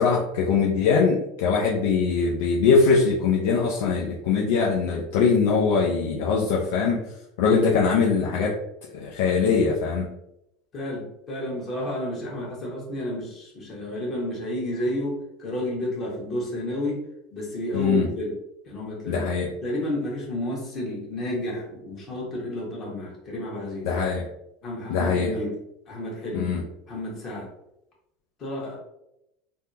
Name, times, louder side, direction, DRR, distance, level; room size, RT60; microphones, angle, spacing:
voice 1, 0.0-7.0 7.4-8.6 9.0-10.1 17.7-18.1 19.1-19.5 23.8-24.2 24.9-25.3 26.3-26.6, left 5 dB, 70° left, -4 dB, 0.5 m, -22 dB
voice 2, 10.7-17.0 17.3-18.4 18.6-19.3 19.6-23.9 24.6-25.6 25.9-26.5 26.9-27.5 28.4-28.8, left 1 dB, 40° left, -3 dB, 1.4 m, -31 dB
3.4 x 2.2 x 2.8 m, 0.82 s
hypercardioid pair, 85°, 0 cm